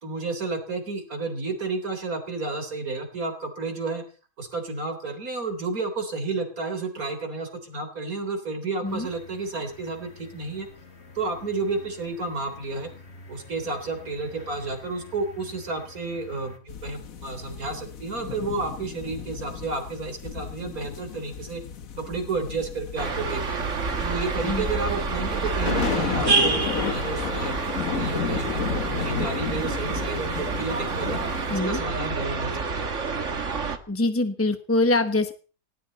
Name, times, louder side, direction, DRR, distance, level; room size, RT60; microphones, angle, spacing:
voice 1, 0.0-4.0 4.4-10.7 11.1-12.9 13.3-21.6 22.0-23.6 24.0-26.6 26.9-27.6 28.0-31.2 31.5-32.9, right 3 dB, 75° right, 7 dB, 4.1 m, -31 dB
sound 1, 8.8-16.6, left 3 dB, 45° left, 2.8 m, -48 dB
sound 2, 16.7-31.6, left 7 dB, 70° left, 1.5 m, -33 dB
sound 3, 23.0-33.8, right 4 dB, 55° right, 1.9 m, -28 dB
voice 2, 31.5-31.8 33.9-35.3, left 2 dB, 10° left, 8 dB, 0.9 m, -24 dB
20.0 x 17.5 x 4.1 m, 0.38 s
omnidirectional pair, 1.5 m